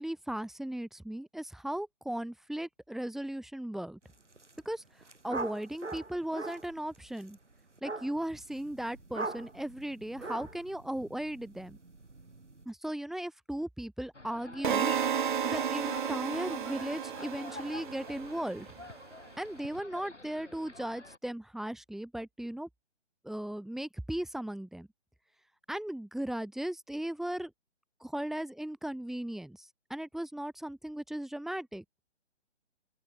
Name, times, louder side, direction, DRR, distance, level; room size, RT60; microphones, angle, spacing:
voice 1, 0.0-4.0 4.6-4.8 5.2-7.4 7.8-11.8 12.7-18.7 19.4-22.7 23.2-24.9 25.7-27.5 28.0-31.8, right 1 dB, ahead, 2.6 m, -37 dB
sound 1, 4.2-4.6 4.8-12.6, right 3 dB, 80° right, 4.3 m, -42 dB
sound 2, 14.1-21.2, left 2 dB, 85° left, 7.0 m, -47 dB
sound 3, 14.6-18.7, right 8 dB, 45° right, 2.4 m, -33 dB
open air
figure-of-eight pair, 140°, 35 cm